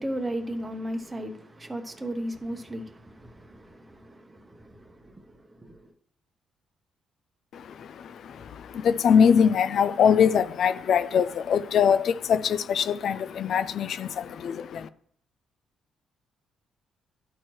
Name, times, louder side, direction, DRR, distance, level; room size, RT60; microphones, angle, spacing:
voice 1, 0.0-5.8, right 1 dB, 20° right, 0.9 m, -36 dB
voice 2, 7.5-14.9, left 7 dB, 65° left, 0.4 m, -23 dB
11.0 x 4.5 x 3.1 m
cardioid pair, 90°, 0 cm